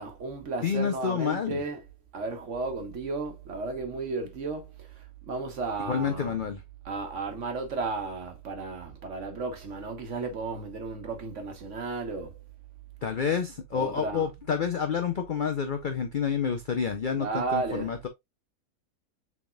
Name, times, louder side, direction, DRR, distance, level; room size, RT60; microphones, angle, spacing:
voice 1, 0.0-1.8 2.1-4.7 5.3-6.5 6.8-12.3 13.7-14.3 17.1-17.9, right 3 dB, 55° right, 1.4 m, -34 dB
voice 2, 0.6-1.6 5.9-6.6 13.0-18.1, left 7 dB, 55° left, 0.5 m, -29 dB
6.2 x 3.6 x 2.3 m
omnidirectional pair, 1.6 m